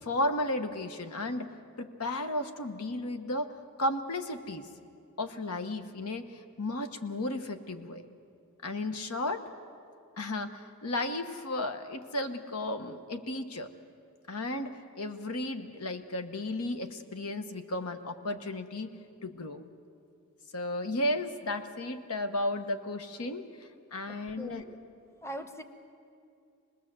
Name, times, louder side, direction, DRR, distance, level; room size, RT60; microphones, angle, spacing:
voice 1, 0.0-1.5 1.8-4.7 5.2-6.3 6.6-8.1 8.6-9.5 10.2-13.7 14.3-18.9 19.2-19.7 20.5-24.6, left 1 dB, 85° left, 8 dB, 1.3 m, -34 dB
voice 2, 24.1-24.8 25.2-25.6, equal, 10° left, 8 dB, 1.0 m, -41 dB
25.5 x 20.0 x 7.7 m, 2.5 s
head